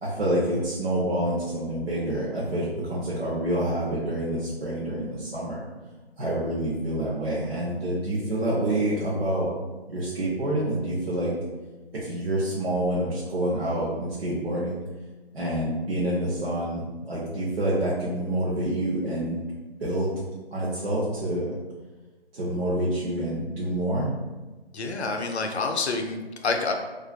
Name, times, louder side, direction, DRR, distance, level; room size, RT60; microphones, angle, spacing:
voice 1, 0.0-5.6 6.2-9.5 9.9-11.3 11.9-14.8 15.3-19.4 19.8-20.1 20.5-21.5 22.3-24.1, right 1 dB, 65° right, -8 dB, 0.7 m, -27 dB
voice 2, 24.7-26.7, left 3 dB, 80° left, 4 dB, 0.5 m, -28 dB
2.4 x 2.3 x 2.2 m, 1.2 s
figure-of-eight pair, 175°, 32 cm